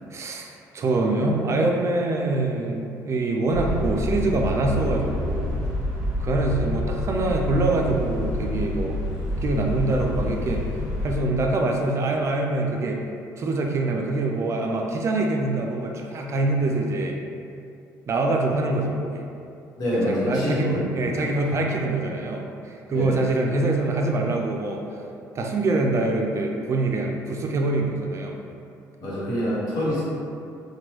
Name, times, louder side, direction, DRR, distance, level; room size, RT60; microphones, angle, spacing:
voice 1, 0.1-5.5 6.2-9.0 9.4-10.6 11.0-13.0 13.4-17.2 18.1-19.2 20.1-24.8 25.3-28.4, right 2 dB, 40° right, 1 dB, 0.3 m, -24 dB
sound 1, 3.5-11.1, left 1 dB, 15° left, 1.3 m, -28 dB
voice 2, 19.8-21.2 22.9-23.2 29.0-30.0, equal, 60° left, -8 dB, 1.1 m, -26 dB
2.9 x 2.2 x 3.0 m, 2.6 s
cardioid pair, 85°, 7 cm